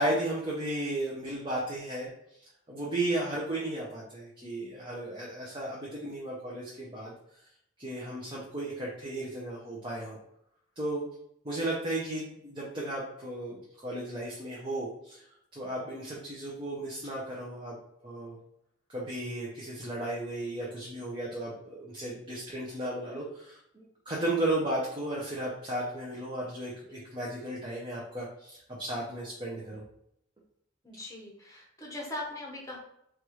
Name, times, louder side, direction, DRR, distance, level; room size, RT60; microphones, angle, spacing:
voice 1, 0.0-2.1 2.7-7.1 7.8-10.2 10.8-11.1 11.4-15.3 15.5-17.8 18.0-18.4 18.9-29.8, right 1 dB, 25° right, -5 dB, 0.6 m, -34 dB
voice 2, 30.8-32.8, left 1 dB, 15° left, -1 dB, 0.8 m, -40 dB
4.6 x 2.4 x 3.0 m, 0.75 s
head